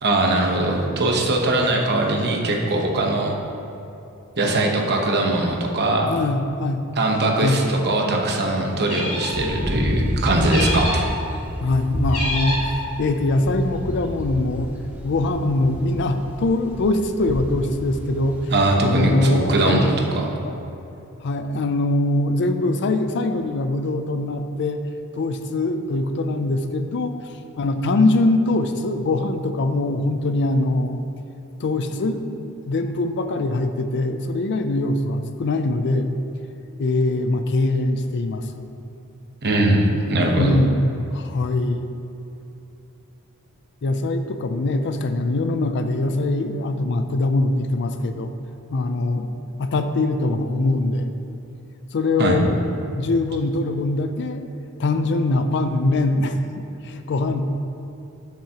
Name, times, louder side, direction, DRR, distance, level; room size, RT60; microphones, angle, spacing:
voice 1, 0.0-3.3 4.4-6.1 7.0-11.1 18.5-20.3 39.4-40.6 52.2-52.4, right 2 dB, 50° right, 0 dB, 1.0 m, -21 dB
voice 2, 6.1-6.8 7.4-7.6 11.6-14.7 15.0-18.4 18.8-20.0 20.4-20.6 21.2-24.8 25.1-27.1 27.6-31.0 31.6-36.1 36.8-38.6 40.4-41.9 43.8-48.3 48.7-49.3 49.6-51.1 51.9-52.6 52.9-54.4 54.8-56.4 56.8-57.4, left 2 dB, 55° left, 8 dB, 0.4 m, -22 dB
sound 1, 8.8-9.5 10.5-11.1 12.1-12.8, left 1 dB, 80° left, 1.7 m, -27 dB
sound 2, 9.3-19.5, equal, 5° right, 0.9 m, -29 dB
12.0 x 6.0 x 2.9 m, 2.8 s
head